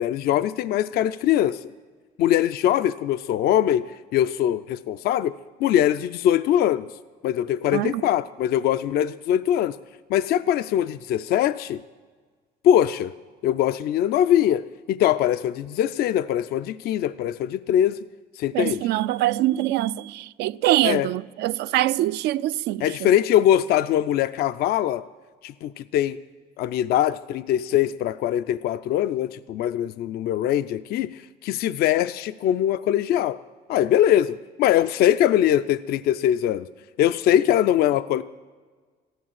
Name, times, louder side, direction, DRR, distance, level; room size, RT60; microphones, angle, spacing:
voice 1, 0.0-1.6 2.2-5.3 5.6-6.9 7.2-9.8 10.1-11.8 12.6-13.1 13.4-18.0 18.4-18.8 20.8-21.1 22.8-25.0 25.4-26.2 26.6-33.4 33.7-36.7 37.0-38.2, left 11 dB, 65° left, 0.4 m, -22 dB
voice 2, 7.7-8.0 18.5-23.1, right 15 dB, 80° right, 0.4 m, -24 dB
14.0 x 11.0 x 7.5 m
cardioid pair, 110°, 17 cm